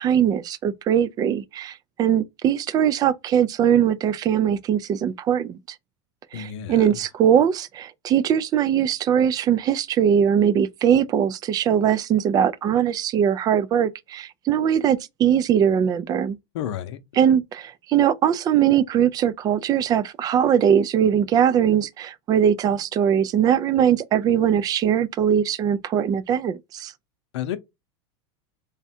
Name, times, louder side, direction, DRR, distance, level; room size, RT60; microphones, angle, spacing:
voice 1, 0.0-5.6 6.3-16.4 17.2-26.9, right 9 dB, 25° right, 0.3 m, -21 dB
voice 2, 6.3-7.0 16.5-17.0 27.3-27.6, left 10 dB, 80° left, 0.7 m, -31 dB
3.4 x 2.2 x 4.2 m
supercardioid pair, 135°, 15 cm